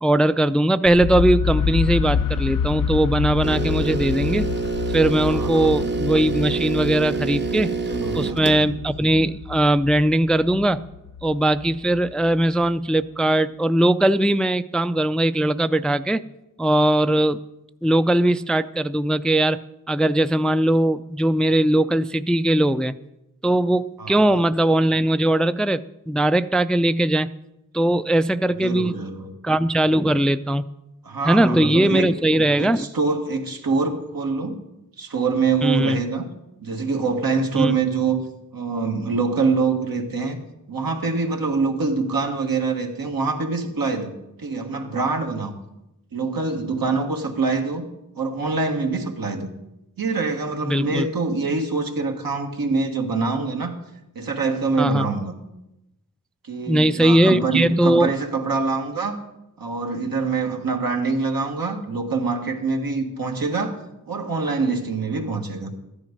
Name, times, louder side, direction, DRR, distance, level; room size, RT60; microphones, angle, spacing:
voice 1, 0.0-4.5 4.9-7.7 8.1-10.8 11.2-16.2 16.6-17.4 17.8-19.6 19.9-22.9 23.4-27.3 27.7-29.0 29.4-30.6 31.2-32.9 35.6-36.0 37.6-37.8 50.6-51.1 54.8-55.1 56.7-58.1, right 1 dB, ahead, 13 dB, 0.3 m, -20 dB
sound 1, 0.9-12.7, left 7 dB, 65° left, 0.5 m, -28 dB
sound 2, 3.4-8.6, right 4 dB, 30° right, 0.7 m, -27 dB
voice 2, 5.3-5.7 7.8-8.8 24.0-24.4 28.6-29.3 30.1-30.2 31.0-32.1 32.6-34.6 35.0-36.3 36.6-38.2 38.5-40.4 40.7-44.1 44.4-45.5 46.1-47.8 48.2-49.5 50.0-53.8 54.1-55.3 56.4-59.2 59.6-63.8 64.1-65.7, right 4 dB, 85° right, 3 dB, 1.7 m, -25 dB
13.5 x 10.5 x 5.2 m, 0.91 s
wide cardioid pair, 65°, 34 cm